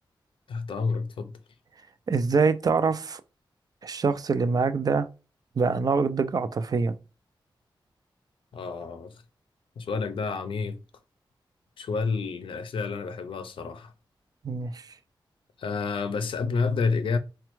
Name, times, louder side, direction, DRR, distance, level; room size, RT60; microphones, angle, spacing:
voice 1, 0.5-1.4 8.5-9.2 9.8-10.8 11.8-13.9 15.6-17.2, left 4 dB, 80° left, 0.5 m, -29 dB
voice 2, 2.1-3.2 3.8-5.1 5.6-6.9 14.4-14.9, right 4 dB, 45° right, 0.4 m, -24 dB
4.2 x 2.2 x 3.0 m
wide cardioid pair, 120°, 9 cm